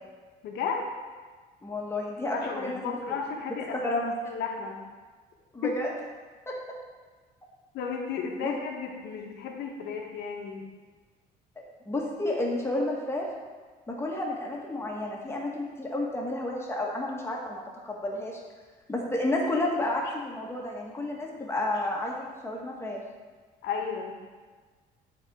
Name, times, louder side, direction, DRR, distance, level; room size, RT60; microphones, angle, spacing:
voice 1, 0.4-0.9 2.3-3.8 4.2-4.8 5.6-5.7 7.7-10.7 23.6-24.2, left 6 dB, 80° left, 1 dB, 1.4 m, -33 dB
voice 2, 1.6-3.0 3.7-4.1 5.5-5.9 6.4-6.5 8.4-8.6 11.5-13.3 13.9-18.4 18.9-23.0, left 1 dB, 15° left, -2 dB, 1.7 m, -31 dB
10.5 x 4.4 x 4.8 m, 1.4 s
cardioid pair, 110°, 17 cm